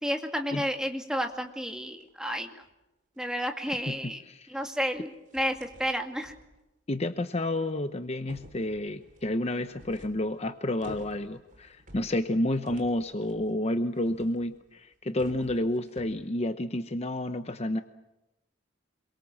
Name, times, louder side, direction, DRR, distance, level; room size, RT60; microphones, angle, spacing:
voice 1, 0.0-2.6 3.2-4.2 4.5-6.3, equal, 5° right, 4 dB, 2.2 m, -31 dB
sound 1, 1.3-2.1 2.6-2.7 3.1-3.3 3.7-3.8 4.9-5.0 5.3-6.6 7.6-7.7 8.1-14.7 14.9-16.3, equal, 40° right, 3.0 m, -51 dB
voice 2, 3.9-4.5 6.9-17.8, left 1 dB, 35° left, 9 dB, 0.9 m, -30 dB
27.0 x 23.0 x 7.5 m, 0.96 s
head